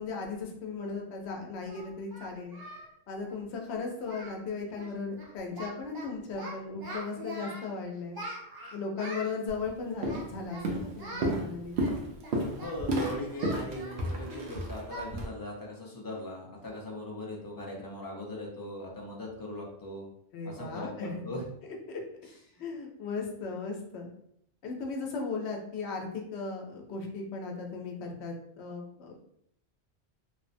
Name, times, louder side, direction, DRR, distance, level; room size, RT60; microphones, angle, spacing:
voice 1, 0.0-2.6 3.1-8.2 8.7-11.8 20.3-21.3 22.6-24.1 24.6-29.2, left 4 dB, 80° left, 1 dB, 0.9 m, -37 dB
Singing, 0.9-1.0 1.7-2.9 3.2-3.4 3.7-3.8 4.0-4.4 4.7-4.9 5.2-6.0 6.3-7.7 8.1-9.3 10.0-10.7 11.0-11.3 11.8-14.4 14.9-15.1 15.4-15.6 16.0-16.1 16.6-16.9, right 1 dB, 35° right, 0.4 m, -43 dB
Walk footsteps, 9.5-9.7 10.0-10.4 10.6-15.3, right 1 dB, 80° right, 0.9 m, -32 dB
voice 2, 12.6-20.1 20.4-21.4, left 1 dB, 30° left, -2 dB, 0.4 m, -40 dB
3.1 x 2.0 x 2.5 m, 0.71 s
omnidirectional pair, 1.1 m